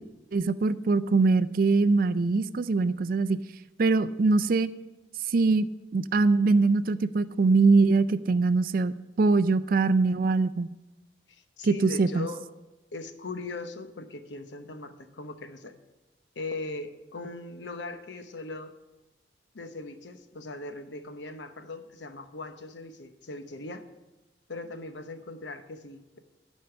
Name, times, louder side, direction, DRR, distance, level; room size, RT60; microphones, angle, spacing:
voice 1, 0.3-3.4 3.8-4.7 5.3-10.7 11.6-12.3, right 3 dB, 50° right, 15 dB, 0.4 m, -23 dB
voice 2, 11.3-12.4 12.9-15.7 16.4-18.7 19.5-23.8 24.5-26.2, left 2 dB, 75° left, 8 dB, 0.9 m, -39 dB
12.5 x 5.4 x 6.8 m, 1.0 s
head